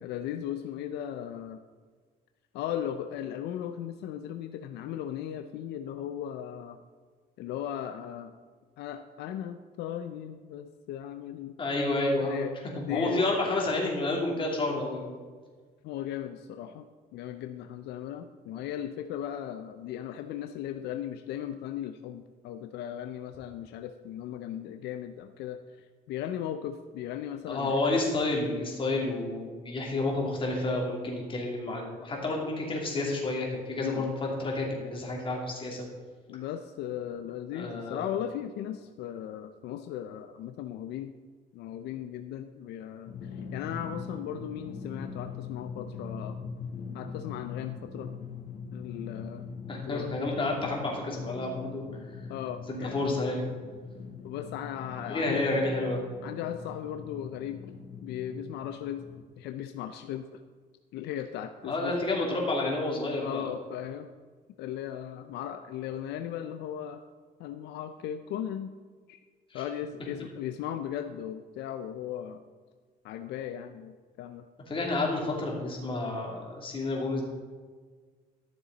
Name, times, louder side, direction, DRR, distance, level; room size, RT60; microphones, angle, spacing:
voice 1, 0.0-1.6 2.5-6.8 7.4-8.3 8.8-11.6 12.2-13.3 15.8-25.6 26.1-28.0 33.8-34.2 36.3-41.1 41.5-46.4 46.9-48.1 48.7-50.1 52.3-53.0 54.2-55.4 56.2-57.7 58.0-59.1 59.4-60.4 60.9-62.0 63.2-64.1 64.6-67.0 67.4-68.7 69.1-69.2 69.5-72.4 73.0-74.4, left 10 dB, 80° left, 8 dB, 0.5 m, -37 dB
voice 2, 11.6-12.4 12.9-15.2 27.5-35.9 37.5-38.1 49.7-52.2 52.7-53.5 55.1-56.0 61.6-63.5 69.5-69.6 74.7-77.2, left 2 dB, 30° left, -1 dB, 2.8 m, -30 dB
Drum, 43.1-59.2, left 5 dB, 55° left, 1.2 m, -42 dB
13.0 x 6.9 x 4.0 m, 1.5 s
cardioid pair, 110°, 17 cm